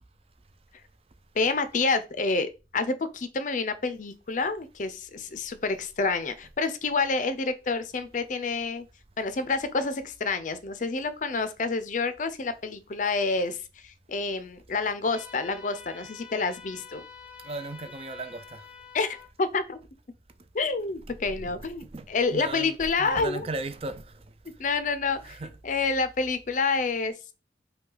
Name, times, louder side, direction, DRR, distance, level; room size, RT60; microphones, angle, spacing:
voice 1, 1.3-8.9 9.2-17.0 18.9-19.8 20.5-23.5 24.6-25.4 25.6-27.1, left 4 dB, 45° left, 0.5 m, -28 dB
sound 1, 15.1-19.3, left 5 dB, 10° right, 0.9 m, -47 dB
voice 2, 17.4-18.8 21.1-24.6 25.2-25.6, right 2 dB, 35° right, 0.5 m, -38 dB
5.4 x 2.3 x 3.8 m
head